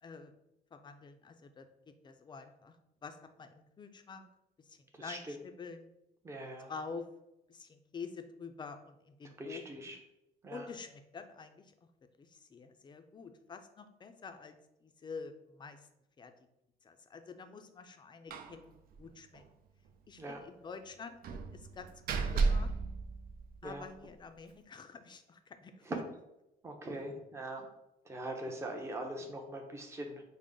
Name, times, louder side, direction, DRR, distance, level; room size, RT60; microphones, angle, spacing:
voice 1, 0.0-0.3 0.7-2.8 3.0-4.3 4.6-5.9 6.7-7.1 7.5-9.9 10.5-11.7 12.2-14.6 14.8-15.9 16.2-16.3 16.8-19.4 20.1-22.7 23.6-25.8, left 5 dB, 25° left, 7 dB, 0.4 m, -48 dB
voice 2, 5.0-5.4 6.2-6.7 9.4-10.0 10.4-10.7 20.2-20.4 23.6-23.9 25.9-26.0 26.6-27.7 28.1-30.2, right 1 dB, 15° right, 2 dB, 0.6 m, -41 dB
Slam, 18.3-18.6 18.9-19.0 19.3-19.5 21.2-23.8, right 4 dB, 60° right, 0.5 m, -33 dB
5.1 x 2.0 x 3.7 m, 0.87 s
cardioid pair, 110°, 17 cm